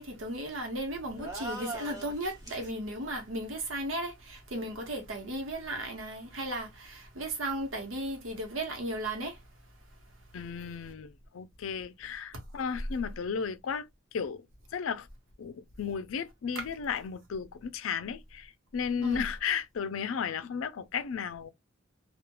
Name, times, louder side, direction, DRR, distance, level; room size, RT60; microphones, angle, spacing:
voice 1, 0.0-9.4 16.5-16.6 19.0-19.3, right 1 dB, 80° right, 1.0 m, -35 dB
sound 1, 1.2-2.7, right 2 dB, 20° right, 0.9 m, -40 dB
voice 2, 10.3-13.9 14.1-14.5 14.7-15.1 15.4-21.5, left 6 dB, 85° left, 0.4 m, -34 dB
2.9 x 2.3 x 2.2 m
head